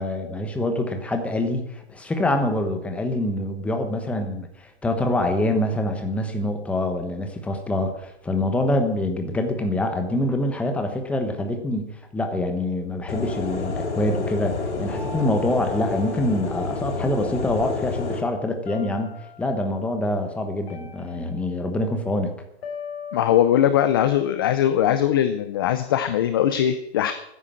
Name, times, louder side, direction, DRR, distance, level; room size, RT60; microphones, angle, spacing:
voice 1, 0.0-22.3, left 1 dB, 5° left, 5 dB, 1.1 m, -25 dB
sound 1, 13.1-18.2, left 3 dB, 85° left, 4.7 m, -29 dB
sound 2, 14.9-17.3 18.7-19.7 20.7-22.0 22.6-25.0, left 5 dB, 55° left, 4.7 m, -41 dB
voice 2, 23.1-27.1, left 10 dB, 20° left, 11 dB, 0.5 m, -20 dB
14.0 x 9.9 x 7.5 m, 0.80 s
hypercardioid pair, 165°, 33 cm